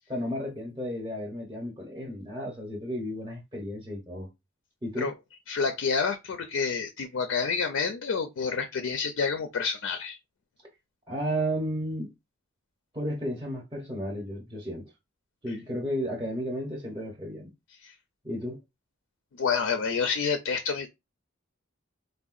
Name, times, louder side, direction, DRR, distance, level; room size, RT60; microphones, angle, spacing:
voice 1, 0.1-4.3 4.8-5.1 11.1-12.1 12.9-14.9 15.4-17.5 18.2-18.6, equal, 20° right, 0.6 m, -33 dB
voice 2, 5.5-10.2 17.8-17.9 19.3-20.9, left 5 dB, 70° left, 0.4 m, -28 dB
3.6 x 2.1 x 2.4 m
head